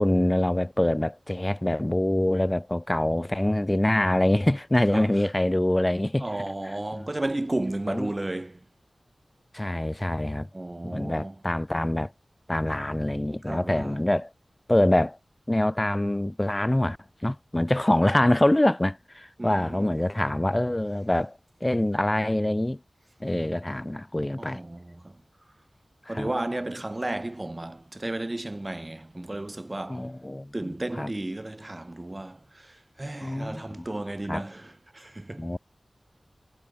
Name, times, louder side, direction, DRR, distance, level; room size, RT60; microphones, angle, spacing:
voice 1, 0.0-6.3 6.6-7.1 7.9-8.1 9.5-10.5 10.8-12.1 12.5-14.3 14.7-15.2 15.5-17.0 17.2-22.8 23.2-24.6 26.1-26.3 29.9-31.1 33.2-33.9 34.3-34.4 35.4-35.6, left 1 dB, 20° left, 0.3 m, -25 dB
voice 2, 6.2-8.6 10.5-11.3 13.5-14.0 19.4-19.9 24.4-25.1 26.1-30.1 30.5-35.6, right 1 dB, 25° right, 0.7 m, -33 dB
wide cardioid pair, 80°, 0 cm